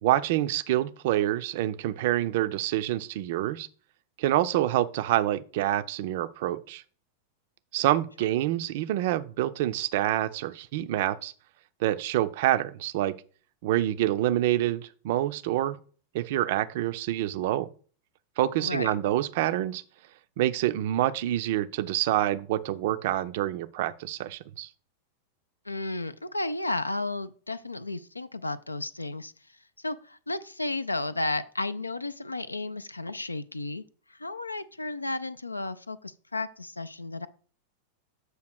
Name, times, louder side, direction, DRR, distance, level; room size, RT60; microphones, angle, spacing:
voice 1, 0.0-3.7 4.2-6.8 7.7-11.3 11.8-13.2 13.6-15.8 16.1-17.7 18.4-19.8 20.4-24.7, right 14 dB, 50° right, 0.4 m, -27 dB
voice 2, 18.6-18.9 25.7-29.3 29.8-33.8 34.1-37.3, left 2 dB, 80° left, 0.4 m, -33 dB
7.7 x 2.8 x 5.9 m
figure-of-eight pair, 90°, 0 cm